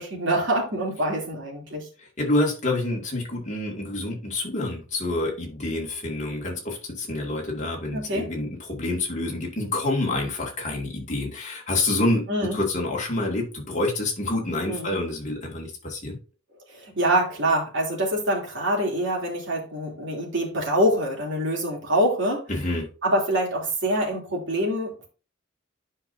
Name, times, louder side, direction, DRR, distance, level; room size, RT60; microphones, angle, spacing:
voice 1, 0.0-1.9 7.9-8.3 12.3-12.6 14.7-14.9 16.7-22.4 23.0-25.1, right 1 dB, 65° right, 3.1 m, -25 dB
voice 2, 2.2-16.2 22.5-22.9, left 2 dB, 35° left, 2.2 m, -27 dB
10.5 x 5.4 x 2.7 m
head